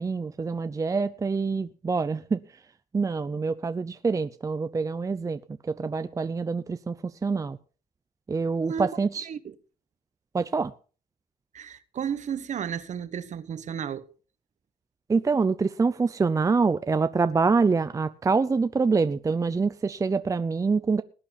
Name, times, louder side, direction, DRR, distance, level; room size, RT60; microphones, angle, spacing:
voice 1, 0.0-2.6 2.9-7.6 8.3-9.3 10.3-10.7 15.1-21.0, right 4 dB, 20° right, 0.6 m, -26 dB
voice 2, 11.5-14.1, right 8 dB, 45° right, 1.2 m, -33 dB
20.0 x 8.8 x 4.1 m
cardioid pair, 110°, 17 cm